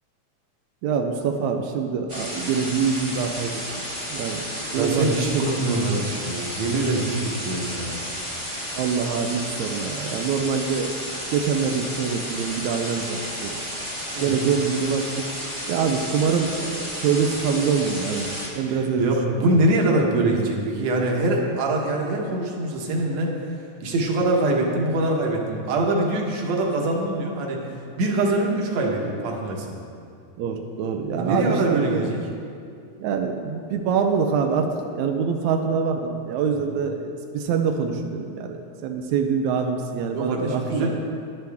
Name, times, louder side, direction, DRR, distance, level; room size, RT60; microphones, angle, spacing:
voice 1, 0.8-3.5 4.1-4.5 4.7-5.6 8.7-11.0 11.3-13.6 14.2-15.3 15.7-19.6 30.4-32.1 33.0-40.9, right 6 dB, 85° right, 4 dB, 1.6 m, -25 dB
sound 1, 2.1-18.5, equal, 20° right, 0.8 m, -32 dB
voice 2, 4.8-7.9 14.1-14.4 18.7-23.6 23.8-27.7 28.0-29.8 31.1-32.2 40.1-40.9, right 2 dB, 60° right, 0 dB, 2.1 m, -24 dB
14.5 x 11.0 x 3.5 m, 2.4 s
omnidirectional pair, 4.1 m